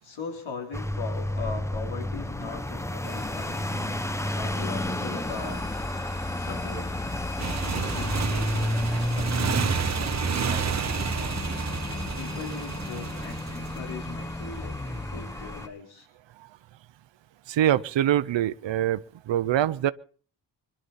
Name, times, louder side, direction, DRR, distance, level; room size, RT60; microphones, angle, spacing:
voice 1, 0.0-3.7 4.2-5.7 6.4-7.0 7.6-11.5 12.2-16.1, left 4 dB, 85° left, 4.0 m, -40 dB
sound 1, 0.7-15.7, left 1 dB, 5° left, 0.7 m, -31 dB
sound 2, 3.0-15.7, left 3 dB, 20° left, 3.7 m, -42 dB
Motorcycle, 7.4-13.8, right 7 dB, 35° right, 0.9 m, -30 dB
voice 2, 17.5-19.9, right 11 dB, 70° right, 0.8 m, -24 dB
25.0 x 11.0 x 4.2 m
cardioid pair, 100°, 46 cm